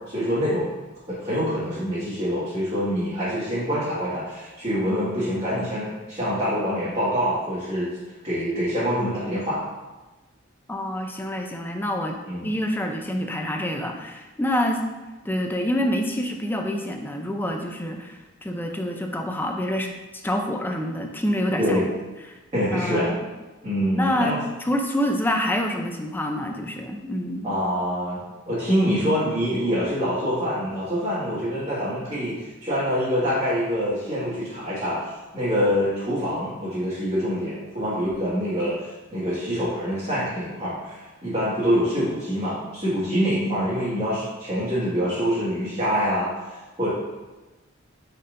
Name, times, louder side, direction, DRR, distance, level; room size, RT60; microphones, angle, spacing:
voice 1, 0.1-0.7 1.1-7.9 8.2-9.6 12.3-12.5 21.6-21.8 22.5-23.1 23.6-24.4 27.4-46.9, equal, 30° right, -12 dB, 1.8 m, -25 dB
voice 2, 10.7-12.2 12.4-14.8 15.2-19.9 20.2-21.8 22.3-22.4 22.7-23.2 24.0-27.5, left 1 dB, 10° left, 3 dB, 0.4 m, -27 dB
8.6 x 4.3 x 2.6 m, 1.1 s
head